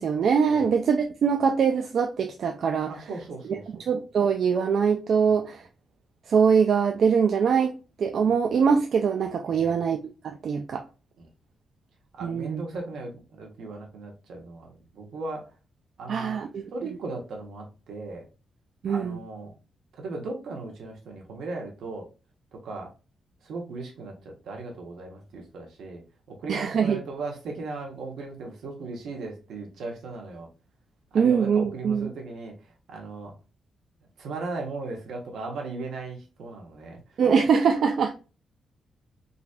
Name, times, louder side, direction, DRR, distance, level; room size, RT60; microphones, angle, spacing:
voice 1, 0.0-2.9 3.9-5.6 6.3-7.7 8.0-10.0 10.4-10.8 12.2-12.6 16.1-16.7 18.8-19.2 26.5-27.0 31.1-32.1 37.2-38.1, right 6 dB, 60° right, 0.3 m, -23 dB
voice 2, 2.9-3.8 5.2-5.3 8.2-8.3 9.5-9.8 11.2-11.3 12.2-15.5 16.0-16.4 16.7-18.3 18.9-19.5 19.9-22.1 22.5-22.9 23.4-26.0 26.3-30.5 31.1-33.3 34.2-37.2, right 3 dB, 80° right, 1.2 m, -37 dB
3.9 x 2.7 x 2.3 m
wide cardioid pair, 140°, 0 cm